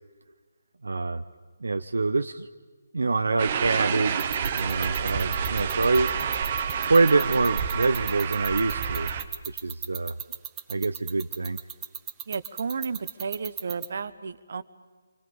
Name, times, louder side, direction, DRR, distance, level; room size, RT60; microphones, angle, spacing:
voice 1, 0.8-1.2 1.6-2.5 2.9-6.1 6.8-9.1 9.5-10.1 10.7-11.6, right 3 dB, 75° right, 8 dB, 0.7 m, -25 dB
sound 1, 3.4-9.2, right 7 dB, 40° right, 1.2 m, -29 dB
sound 2, 4.2-13.8, right 9 dB, 15° right, 1.5 m, -34 dB
voice 2, 12.3-14.6, right 5 dB, 55° right, 15 dB, 1.0 m, -33 dB
27.5 x 25.5 x 5.5 m, 1.4 s
figure-of-eight pair, 150°, 0 cm